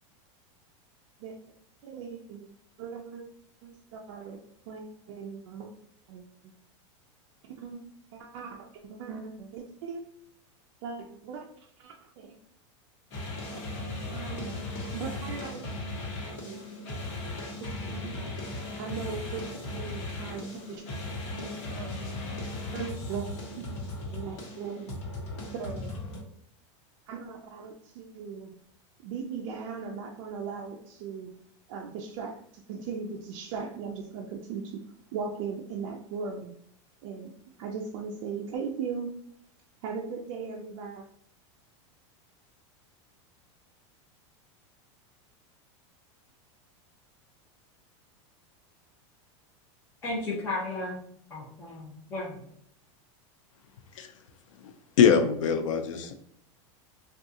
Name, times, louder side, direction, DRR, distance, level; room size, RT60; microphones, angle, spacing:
voice 1, 1.8-2.5 2.8-3.2 3.6-5.7 6.1-6.5 7.5-7.8 8.1-10.0 10.8-12.4 13.5-14.6 14.9-15.7 16.2-16.6 16.9-17.0 17.6-18.3 18.8-19.4 19.7-20.8 21.3-22.0 22.7-23.6 24.1-25.0 25.5-26.0 27.1-28.5 29.0-31.3 31.7-34.8 35.1-36.5 37.0-37.3 37.6-39.1 39.8-41.0, right 5 dB, 50° right, 0.4 m, -38 dB
sound 1, 13.1-26.2, left 2 dB, 65° left, 1.1 m, -37 dB
voice 2, 50.0-51.0 51.3-52.5, left 2 dB, 15° left, 0.7 m, -34 dB
voice 3, 55.0-56.1, left 7 dB, 90° left, 0.5 m, -22 dB
3.5 x 2.3 x 2.7 m
supercardioid pair, 160°, 16 cm